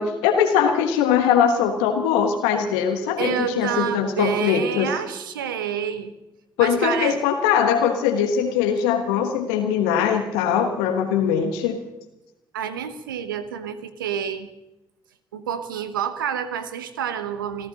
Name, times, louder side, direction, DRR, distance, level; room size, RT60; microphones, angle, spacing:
voice 1, 0.0-4.9 6.6-11.8, left 8 dB, 75° left, 5 dB, 1.2 m, -21 dB
voice 2, 3.2-6.1 6.6-7.2 12.5-14.5 15.3-17.7, right 8 dB, 80° right, 11 dB, 0.9 m, -28 dB
29.5 x 14.5 x 2.9 m, 0.95 s
figure-of-eight pair, 40°, 11 cm